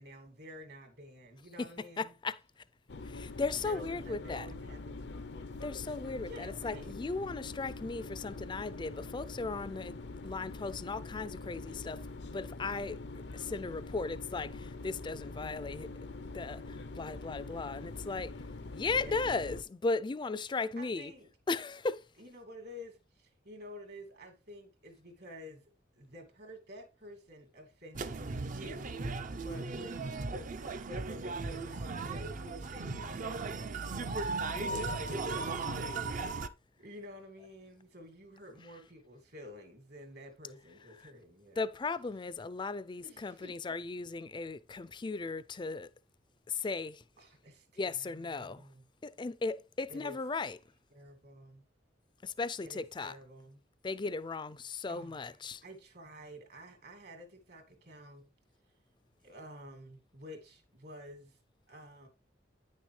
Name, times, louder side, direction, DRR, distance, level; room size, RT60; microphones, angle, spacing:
voice 1, 0.0-2.1 3.6-5.4 6.3-6.9 19.0-19.3 20.8-21.3 22.2-30.0 30.3-30.5 30.8-34.1 34.4-35.5 36.8-41.6 43.0-43.6 47.2-48.8 49.9-50.2 50.9-51.6 52.6-53.6 54.9-58.3 59.2-61.4 61.7-62.1, equal, 65° right, 2.4 m, -50 dB
voice 2, 2.0-2.4 3.0-4.5 5.6-10.0 10.2-12.1 12.3-13.0 13.3-18.3 18.7-21.1 21.5-22.0 34.1-35.1 41.0-41.1 41.6-45.9 46.5-47.0 47.8-48.6 49.0-50.6 52.2-53.2 53.8-55.6, left 3 dB, 25° left, 0.4 m, -37 dB
sound 1, 2.9-19.6, left 3 dB, 75° left, 0.6 m, -44 dB
sound 2, 27.9-36.5, right 3 dB, 50° right, 0.6 m, -37 dB
9.3 x 6.4 x 3.2 m
head